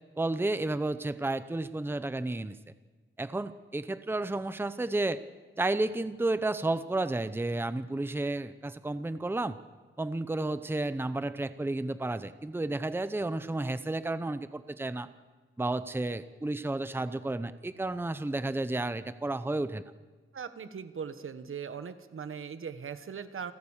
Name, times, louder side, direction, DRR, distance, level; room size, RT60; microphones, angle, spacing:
voice 1, 0.2-2.6 3.2-5.2 5.6-9.6 10.0-15.1 15.6-19.8, right 2 dB, 10° right, 13 dB, 0.7 m, -32 dB
voice 2, 20.3-23.5, right 7 dB, 75° right, 11 dB, 1.3 m, -39 dB
29.0 x 14.5 x 7.2 m, 1.3 s
wide cardioid pair, 150°, 21 cm